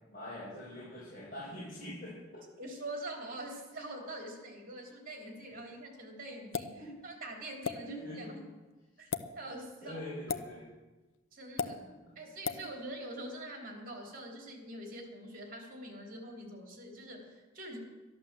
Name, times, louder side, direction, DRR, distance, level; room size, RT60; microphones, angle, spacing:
voice 1, 0.1-2.2 6.8-7.0 7.8-8.3 9.8-10.7 11.6-12.1 12.5-12.7, left 1 dB, 45° left, -10 dB, 6.3 m, -44 dB
voice 2, 2.6-8.4 9.0-9.1 9.3-10.0 11.3-11.8 12.1-17.8, right 1 dB, 45° right, 1 dB, 3.3 m, -44 dB
sound 1, 6.5-6.8 7.6-7.8 9.0-9.2 10.3-10.5 11.6-11.7 12.4-12.6, left 6 dB, 75° left, 0.8 m, -33 dB
12.5 x 11.5 x 7.4 m, 1.2 s
head